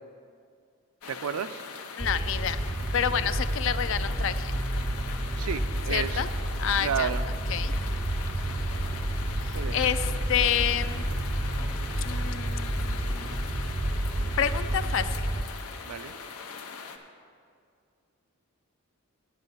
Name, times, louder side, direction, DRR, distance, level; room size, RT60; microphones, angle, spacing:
sound 1, 1.0-17.0, left 5 dB, 85° left, 0.8 m, -41 dB
voice 1, 1.1-1.6 5.4-6.2 6.8-7.3 9.5-10.1 15.9-16.1, right 7 dB, 80° right, 12 dB, 0.4 m, -32 dB
voice 2, 2.0-2.6 2.9-4.5 5.9-6.3 6.6-7.1 7.5-7.7 9.4-11.0 12.0-13.4 14.4-15.3, left 9 dB, 55° left, 13 dB, 0.4 m, -29 dB
sound 2, 2.0-15.4, right 1 dB, 15° right, 0.4 m, -30 dB
sound 3, 7.7-15.3, left 1 dB, 25° left, 0.7 m, -40 dB
9.5 x 7.5 x 5.6 m, 2.3 s
head